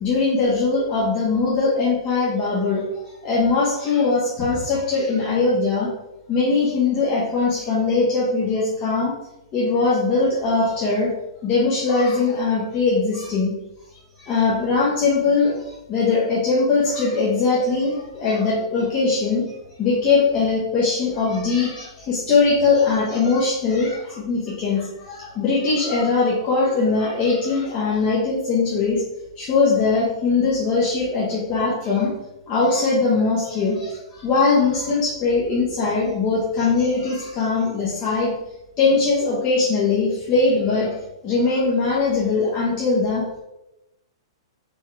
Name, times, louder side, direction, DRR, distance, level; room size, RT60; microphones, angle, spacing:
voice 1, 0.0-5.9 6.3-9.1 9.5-11.1 11.4-13.5 14.2-19.4 19.8-29.0 29.4-32.1 32.5-38.3 38.8-43.2, left 4 dB, 30° left, -7 dB, 1.1 m, -21 dB
4.5 x 3.1 x 3.4 m, 0.94 s
figure-of-eight pair, 110°, 3 cm